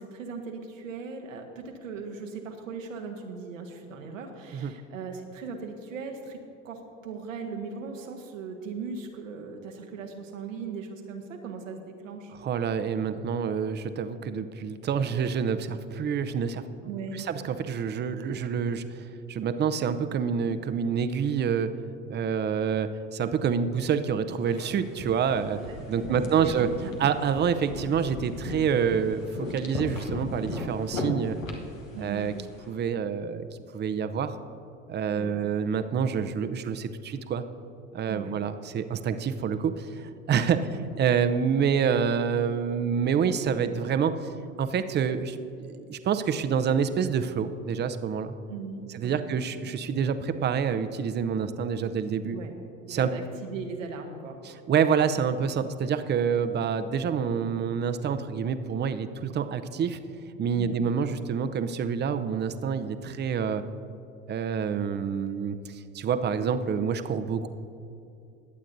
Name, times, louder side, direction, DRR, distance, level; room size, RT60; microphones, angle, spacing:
voice 1, 0.0-12.3 16.8-17.3 25.7-26.7 31.9-32.4 35.1-35.4 38.1-38.3 40.6-40.7 48.5-49.4 52.3-52.5 52.9-54.4 60.5-60.8, right 5 dB, 80° right, 3 dB, 1.3 m, -39 dB
voice 2, 12.4-16.6 17.1-21.7 22.1-25.6 25.9-26.7 27.0-31.4 32.0-32.3 32.7-33.5 33.7-34.4 34.9-37.4 37.9-40.0 40.3-40.6 41.0-44.1 44.6-48.3 48.9-52.4 52.9-53.1 54.4-60.0 60.4-63.6 64.3-67.5, right 7 dB, 25° right, 10 dB, 0.7 m, -27 dB
sound 1, 24.5-32.6, left 2 dB, 90° left, 1.3 m, -37 dB
21.0 x 8.5 x 2.7 m, 2.6 s
hypercardioid pair, 75°, 39 cm